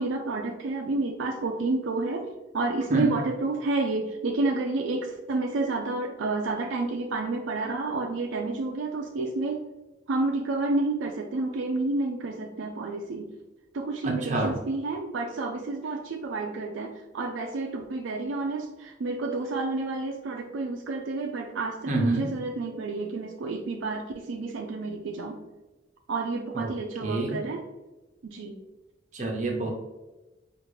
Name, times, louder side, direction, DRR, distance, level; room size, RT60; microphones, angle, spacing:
voice 1, 0.0-2.3 2.5-9.6 10.1-13.3 13.7-25.4 26.1-27.6 28.2-28.5, right 3 dB, 75° right, 2 dB, 0.4 m, -30 dB
voice 2, 14.0-14.6 21.9-22.3 26.5-26.7 27.0-27.4 29.1-29.7, right 2 dB, 40° right, 0 dB, 0.8 m, -27 dB
4.9 x 2.5 x 3.1 m, 1.1 s
head